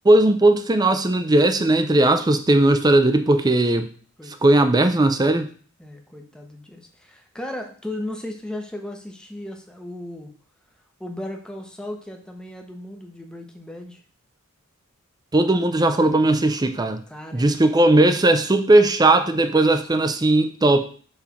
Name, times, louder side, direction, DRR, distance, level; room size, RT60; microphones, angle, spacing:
voice 1, 0.0-3.9 4.3-5.5 15.3-17.0 17.3-20.8, right 2 dB, 20° right, 8 dB, 0.5 m, -18 dB
voice 2, 4.2-4.8 5.8-10.3 11.0-14.0 17.1-17.5 19.7-19.9, left 1 dB, 5° left, 3 dB, 0.8 m, -36 dB
6.1 x 3.3 x 5.7 m, 0.44 s
head